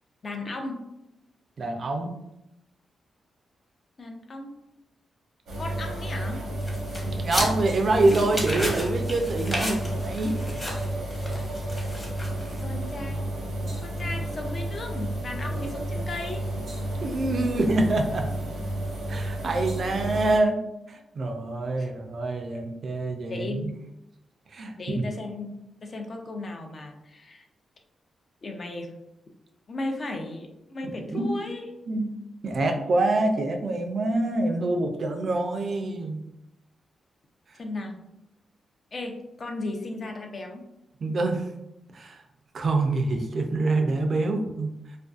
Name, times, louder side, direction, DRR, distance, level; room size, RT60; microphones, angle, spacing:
voice 1, 0.2-0.9 4.0-4.5 5.6-6.5 12.6-13.3 13.8-16.5 21.8-21.9 23.3-23.7 24.8-27.5 28.4-29.0 29.7-31.7 37.6-38.0 38.9-40.6, left 2 dB, 50° left, 3 dB, 0.5 m, -35 dB
voice 2, 1.6-2.1 7.1-10.4 16.5-16.6 17.0-18.3 19.1-20.6 20.9-23.7 24.5-25.0 30.8-31.3 31.9-32.1 32.4-36.2 41.0-41.5 41.9-42.2 42.5-44.7, right 2 dB, 60° right, 4 dB, 0.4 m, -26 dB
sound 1, 5.5-20.4, right 1 dB, 85° right, 0.8 m, -31 dB
sound 2, 6.6-12.8, left 1 dB, 20° left, 0.8 m, -34 dB
2.5 x 2.2 x 2.4 m, 0.88 s
cardioid pair, 65°, 0 cm